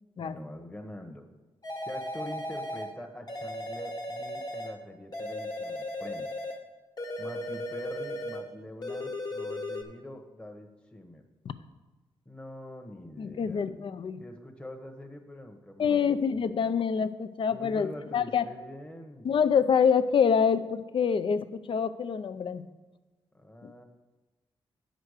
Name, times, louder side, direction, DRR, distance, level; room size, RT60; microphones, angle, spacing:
voice 1, 0.2-1.3 1.8-6.3 7.2-11.2 12.2-13.6 14.2-16.2 17.5-19.3 23.3-23.8, left 1 dB, 10° left, 3 dB, 1.1 m, -44 dB
sound 1, 1.6-2.9 3.3-4.8 5.1-6.6 7.0-8.5 8.8-9.8, left 1 dB, 40° left, 1.5 m, -36 dB
voice 2, 13.2-14.2 15.8-18.4 19.2-22.7 23.6-23.7, left 7 dB, 55° left, 12 dB, 0.6 m, -26 dB
8.9 x 5.1 x 6.5 m, 1.2 s
cardioid pair, 75°, 10 cm